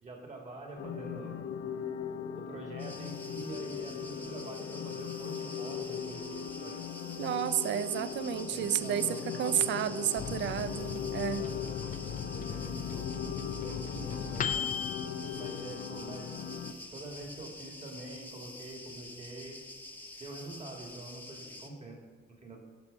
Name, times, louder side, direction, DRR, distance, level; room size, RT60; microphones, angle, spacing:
voice 1, 0.0-1.4 2.4-6.8 7.6-7.8 8.5-10.1 11.3-11.5 12.3-13.1 13.6-14.6 15.4-16.3 16.9-19.6 20.2-22.0 22.3-22.6, right 2 dB, 35° right, 1 dB, 2.7 m, -45 dB
sound 1, 0.8-16.7, left 7 dB, 70° left, 0.8 m, -39 dB
sound 2, 2.8-21.7, left 2 dB, 10° left, 1.1 m, -48 dB
voice 2, 7.2-11.4, right 10 dB, 65° right, 15 dB, 0.5 m, -31 dB
Microwave oven, 10.2-16.3 16.7-16.8 17.0-17.6, left 7 dB, 40° left, 0.7 m, -38 dB
11.0 x 6.1 x 5.7 m, 1.5 s
cardioid pair, 90°, 20 cm